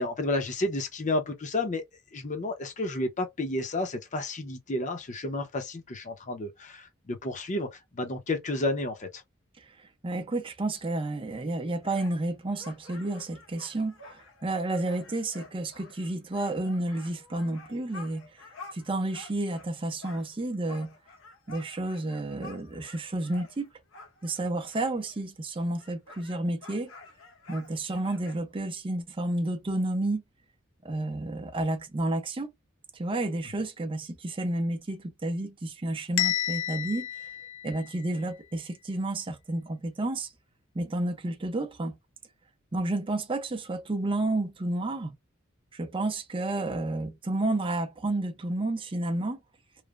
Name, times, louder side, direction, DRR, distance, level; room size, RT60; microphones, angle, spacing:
voice 1, 0.0-1.8 2.1-9.2, left 2 dB, 40° left, 0.7 m, -31 dB
voice 2, 10.0-18.3 18.7-20.9 21.5-23.7 24.2-26.9 27.5-30.2 30.8-32.5 32.9-37.1 37.6-40.3 40.7-42.0 42.7-45.2 45.7-49.4, right 2 dB, 25° right, 0.5 m, -31 dB
sound 1, 11.8-19.7 20.0-25.3 25.5-28.4, left 3 dB, 85° left, 0.7 m, -50 dB
Bell, 36.2-38.2, left 12 dB, 70° left, 0.3 m, -31 dB
3.2 x 2.1 x 2.4 m
head